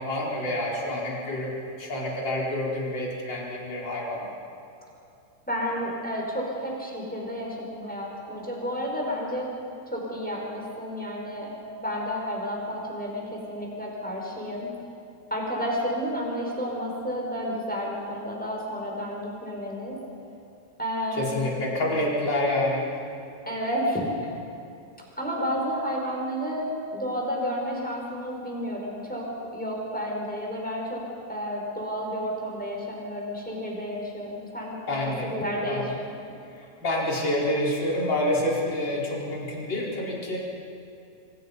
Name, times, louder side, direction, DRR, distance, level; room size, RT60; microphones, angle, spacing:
voice 1, 0.0-1.5 1.8-4.2 21.1-22.9 34.9-35.3 35.6-35.9 36.8-40.4, left 1 dB, 25° left, -4 dB, 5.0 m, -27 dB
voice 2, 5.5-9.5 9.9-11.5 11.8-14.7 15.3-20.0 20.8-21.7 23.4-24.3 25.2-29.3 29.5-31.0 31.3-36.1, equal, ahead, -2 dB, 4.9 m, -31 dB
27.5 x 25.0 x 5.5 m, 2.7 s
omnidirectional pair, 5.4 m